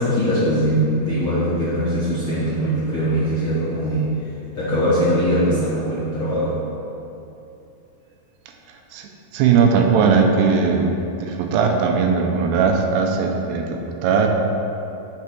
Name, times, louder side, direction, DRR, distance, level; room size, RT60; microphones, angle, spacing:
voice 1, 0.0-4.1 4.5-6.6, equal, 55° left, -12 dB, 1.5 m, -21 dB
voice 2, 8.7-10.9 11.2-14.3, right 5 dB, 80° right, 3 dB, 2.8 m, -19 dB
6.8 x 6.1 x 6.0 m, 2.9 s
omnidirectional pair, 4.9 m